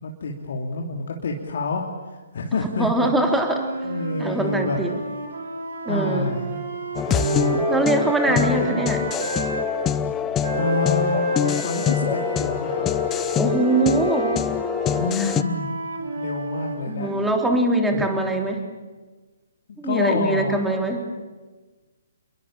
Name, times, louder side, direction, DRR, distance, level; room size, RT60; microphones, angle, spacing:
voice 1, 0.0-2.9 3.8-4.8 5.9-6.6 7.1-7.6 8.4-8.9 10.4-12.9 15.0-15.7 16.2-17.1 17.9-18.0 19.7-20.6, left 3 dB, 55° left, 0 dB, 3.0 m, -28 dB
voice 2, 2.8-3.7 4.2-4.9 5.9-6.3 7.7-9.0 13.4-14.3 15.2-15.3 16.9-18.6 19.8-21.0, right 2 dB, 5° right, 3 dB, 3.5 m, -22 dB
sound 1, 3.4-9.7 10.4-17.5, right 1 dB, 65° right, 5.6 m, -29 dB
sound 2, 6.9-15.4, left 9 dB, 15° left, 0.8 m, -25 dB
29.0 x 22.0 x 7.4 m, 1.3 s
figure-of-eight pair, 130°, 0 cm